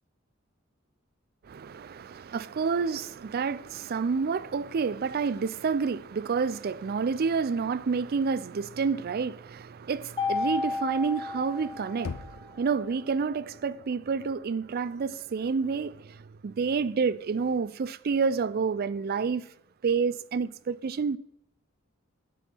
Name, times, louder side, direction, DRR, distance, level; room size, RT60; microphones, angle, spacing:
voice 1, 1.5-15.9 16.4-19.4 19.8-21.2, right 5 dB, 50° right, 0.4 m, -29 dB
Mallet percussion, 10.2-12.4, left 4 dB, 20° left, 0.7 m, -32 dB
Knock, 12.0-13.0, left 4 dB, 90° left, 0.6 m, -39 dB
10.0 x 6.4 x 6.0 m
head